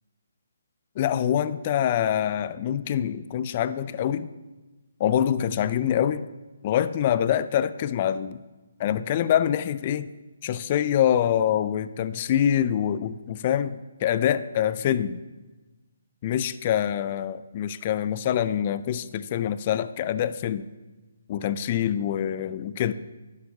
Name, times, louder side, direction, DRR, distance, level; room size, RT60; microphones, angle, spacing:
voice 1, 1.0-4.3 5.0-6.3 6.6-8.4 8.8-10.1 10.4-15.2 16.2-20.7 21.3-22.9, left 10 dB, 35° left, 14 dB, 0.3 m, -25 dB
11.0 x 6.6 x 2.7 m, 1.2 s
hypercardioid pair, 150°, 0 cm